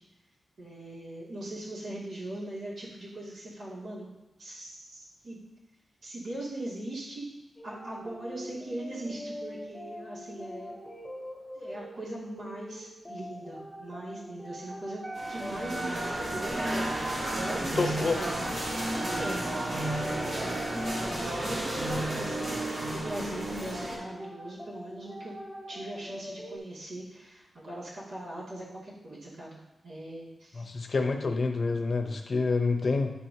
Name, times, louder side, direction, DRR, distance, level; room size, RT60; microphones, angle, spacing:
voice 1, 0.6-4.1 4.4-5.4 6.0-7.3 7.6-10.7 11.5-15.0 15.3-16.8 17.4-18.6 19.2-19.5 21.1-25.3 25.7-30.7 31.2-31.3, right 1 dB, 75° right, -7 dB, 2.4 m, -40 dB
sound 1, 7.6-26.6, equal, 10° left, 1.0 m, -43 dB
Wind instrument woodwind instrument, 15.0-21.5, right 2 dB, 15° right, 0.3 m, -41 dB
sound 2, 15.1-24.0, right 1 dB, 60° right, 2.1 m, -32 dB
voice 2, 17.8-18.2 30.5-33.1, left 4 dB, 45° left, 4 dB, 0.7 m, -27 dB
9.6 x 4.5 x 2.8 m, 1.0 s
wide cardioid pair, 160°, 0 cm